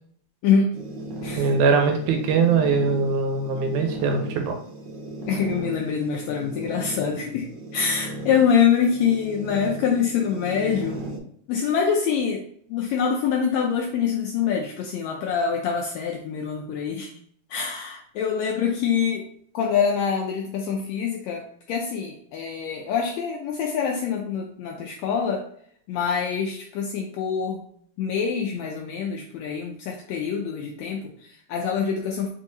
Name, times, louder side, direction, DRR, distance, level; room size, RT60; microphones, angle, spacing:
sound 1, 0.7-11.2, right 1 dB, 65° right, 1.7 m, -36 dB
voice 1, 1.4-4.6, right 5 dB, 80° right, 5 dB, 2.1 m, -22 dB
voice 2, 5.3-11.1 11.5-12.4 12.7-17.1 17.5-19.3 19.5-25.4 25.9-27.7 28.0-32.3, left 7 dB, 85° left, 1 dB, 1.6 m, -25 dB
4.7 x 3.6 x 2.6 m, 0.63 s
omnidirectional pair, 3.6 m